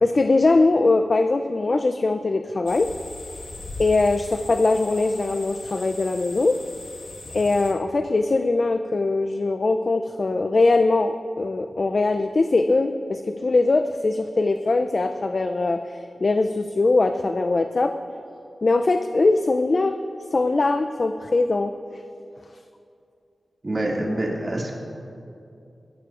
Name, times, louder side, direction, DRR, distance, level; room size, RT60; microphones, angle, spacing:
voice 1, 0.0-2.9 3.8-6.6 7.3-17.9 18.6-20.0 20.3-21.7, left 3 dB, 55° left, 8 dB, 0.4 m, -21 dB
sound 1, 2.7-7.7, left 2 dB, 80° left, 1.6 m, -39 dB
voice 2, 23.6-24.7, right 1 dB, 45° right, -2 dB, 2.4 m, -26 dB
18.5 x 14.5 x 2.5 m, 2.6 s
cardioid pair, 50°, 0 cm